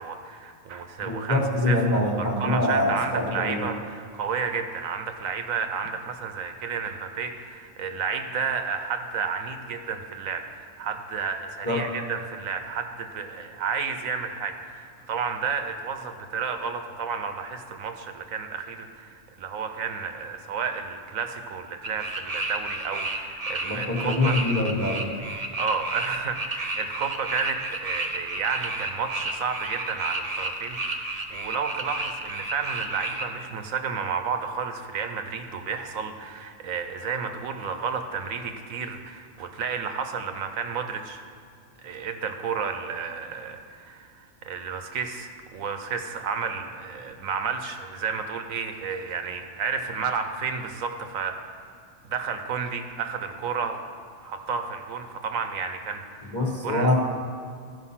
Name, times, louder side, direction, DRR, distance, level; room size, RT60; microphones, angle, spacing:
voice 1, 0.0-24.4 25.4-41.2 41.8-51.4 52.0-53.8 54.2-56.4 56.6-56.9, right 6 dB, 90° right, 7 dB, 1.2 m, -31 dB
voice 2, 1.0-3.7 11.6-11.8 23.6-25.1 56.2-56.9, left 1 dB, 15° left, 0 dB, 1.1 m, -24 dB
sound 1, 21.8-33.3, right 2 dB, 35° right, 0.7 m, -32 dB
14.0 x 5.3 x 5.7 m, 2.2 s
omnidirectional pair, 1.4 m